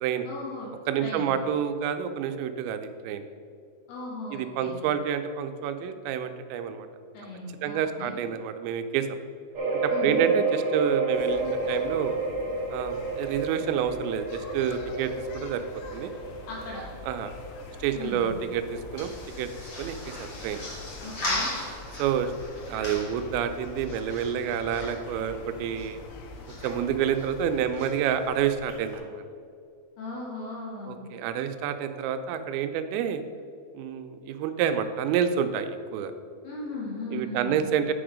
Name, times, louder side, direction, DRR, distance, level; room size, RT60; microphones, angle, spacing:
voice 1, 0.3-0.7 1.0-1.3 3.9-4.8 7.1-8.2 9.9-10.3 16.5-16.8 17.9-18.4 21.0-21.5 30.0-31.0 36.4-37.6, left 2 dB, 70° left, -4 dB, 3.2 m, -37 dB
voice 2, 0.9-3.2 4.3-6.9 7.6-9.1 9.8-12.2 12.7-15.6 15.9-16.1 17.1-17.3 17.8-19.5 19.8-20.6 22.0-22.3 22.7-26.0 26.6-29.2 30.9-33.2 33.7-36.1 37.1-37.9, right 8 dB, 85° right, 9 dB, 2.9 m, -28 dB
sound 1, 9.5-19.0 19.4-19.5 20.0-20.1, right 3 dB, 55° right, 1.5 m, -30 dB
sound 2, 11.1-27.7, left 3 dB, 85° left, 3.1 m, -45 dB
sound 3, 18.6-29.0, left 1 dB, 45° left, 1.3 m, -39 dB
8.7 x 5.3 x 5.0 m, 2.4 s
omnidirectional pair, 5.1 m